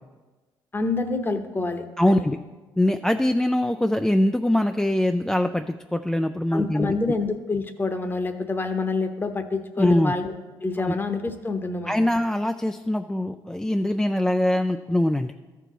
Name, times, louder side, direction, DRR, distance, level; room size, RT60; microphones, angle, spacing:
voice 1, 0.7-2.2 6.5-10.3 10.6-12.0, left 3 dB, 25° left, 7 dB, 0.9 m, -27 dB
voice 2, 2.0-2.4 2.8-6.9 9.8-10.1 10.8-10.9 11.9-15.3, left 1 dB, 5° left, 6 dB, 0.3 m, -23 dB
13.5 x 4.7 x 4.0 m, 1.2 s
supercardioid pair, 75°, 9 cm